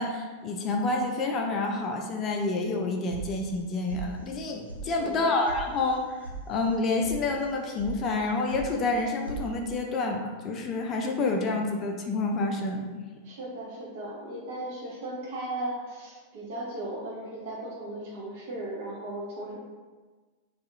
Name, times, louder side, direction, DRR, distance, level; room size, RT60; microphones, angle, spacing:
voice 1, 0.0-12.8, left 3 dB, 30° left, 1 dB, 0.4 m, -28 dB
sound 1, 3.1-3.6 3.9-4.4 4.7-4.8 5.1-5.6 5.9-6.4 6.7-7.1 7.5-7.9 8.2-8.7 8.9-9.4, right 2 dB, 85° right, 0.5 m, -40 dB
voice 2, 4.8-5.3 13.2-19.6, right 1 dB, 50° right, -4 dB, 0.9 m, -37 dB
2.7 x 2.4 x 3.7 m, 1.4 s
figure-of-eight pair, 90°, 0 cm